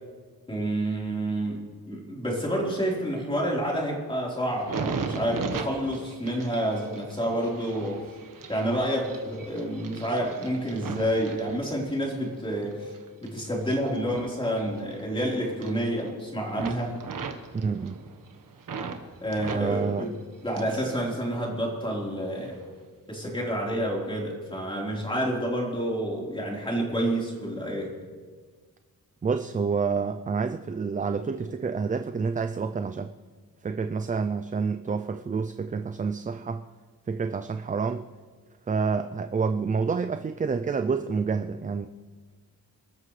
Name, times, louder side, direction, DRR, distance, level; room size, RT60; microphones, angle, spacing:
voice 1, 0.5-8.0 8.5-12.9 13.2-17.0 19.2-20.2 20.4-22.6 23.1-28.0, right 1 dB, 15° left, -3 dB, 3.9 m, -29 dB
sound 1, 4.5-12.2 12.6-15.2 15.5-16.2 16.5-19.0 19.3-20.9 21.2-21.9 22.5-22.7, right 5 dB, 65° right, 1.4 m, -38 dB
voice 2, 17.5-18.0 19.5-20.1 29.2-33.1 33.6-36.6 37.1-38.1 38.7-41.9, right 5 dB, 25° right, 9 dB, 0.4 m, -28 dB
28.0 x 13.5 x 3.2 m, 1.5 s
wide cardioid pair, 145°, 36 cm